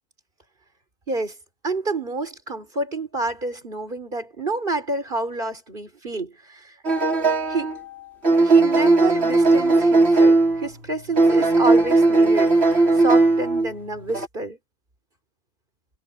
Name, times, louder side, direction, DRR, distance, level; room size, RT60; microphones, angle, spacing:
voice 1, 1.6-6.7 7.5-7.7 8.3-14.6, right 3 dB, 45° right, 4.1 m, -28 dB
sound 1, 6.8-7.8 8.2-10.7 11.1-13.7 14.1-14.3, right 3 dB, 65° right, 4.3 m, -17 dB
omnidirectional pair, 1.2 m